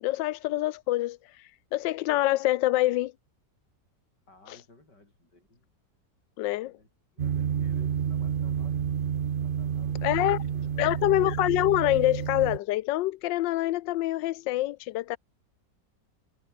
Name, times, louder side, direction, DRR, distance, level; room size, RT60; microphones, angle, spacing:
voice 1, 0.0-3.1 4.5-4.6 6.4-6.7 10.0-10.4 10.8-15.2, left 16 dB, 90° left, 1.3 m, -26 dB
voice 2, 4.3-5.7 6.6-11.5, left 2 dB, 70° left, 7.5 m, -57 dB
sound 1, 7.2-12.6, right 8 dB, 60° right, 0.5 m, -30 dB
omnidirectional pair, 1.9 m